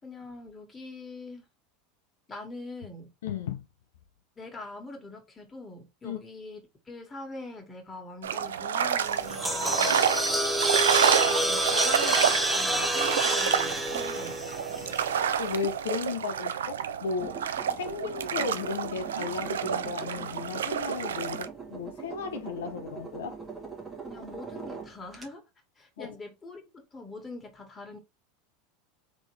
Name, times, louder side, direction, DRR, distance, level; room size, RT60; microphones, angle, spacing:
voice 1, 0.0-1.5 2.3-3.1 4.4-10.0 11.3-14.4 24.0-25.4 25.8-28.0, left 2 dB, 20° left, 1.6 m, -43 dB
voice 2, 3.2-3.6 6.0-6.2 15.4-17.4 17.8-23.4 26.0-26.1, left 5 dB, 75° left, 0.5 m, -35 dB
sound 1, 8.2-21.5, right 8 dB, 80° right, 0.3 m, -29 dB
sound 2, 9.0-15.3, right 1 dB, 5° right, 0.8 m, -28 dB
sound 3, 17.2-25.3, right 5 dB, 20° right, 1.2 m, -43 dB
3.5 x 3.0 x 3.1 m
hypercardioid pair, 90°, 0 cm